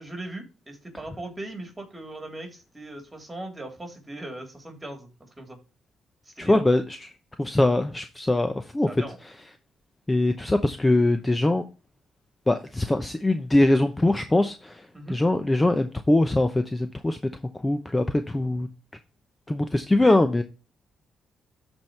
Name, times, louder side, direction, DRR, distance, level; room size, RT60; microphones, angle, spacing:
voice 1, 0.0-5.6 6.3-6.7 8.9-9.2 14.9-15.2 20.0-20.2, right 2 dB, 15° right, 3.5 m, -39 dB
voice 2, 6.4-7.1 7.4-9.0 10.1-11.6 12.5-17.2 17.5-18.7 19.5-20.4, left 2 dB, 15° left, 0.7 m, -22 dB
13.5 x 4.5 x 3.2 m
cardioid pair, 90°, 0 cm